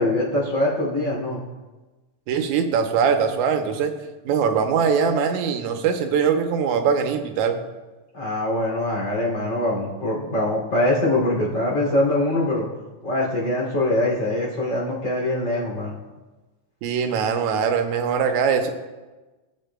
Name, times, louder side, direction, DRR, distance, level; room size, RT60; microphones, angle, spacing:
voice 1, 0.0-1.4 8.1-12.7 13.0-16.0, left 1 dB, 45° left, -4 dB, 3.3 m, -23 dB
voice 2, 2.3-3.9 4.3-7.6 16.8-18.7, right 6 dB, 90° right, 5 dB, 2.2 m, -22 dB
18.5 x 7.1 x 2.2 m, 1.2 s
omnidirectional pair, 3.4 m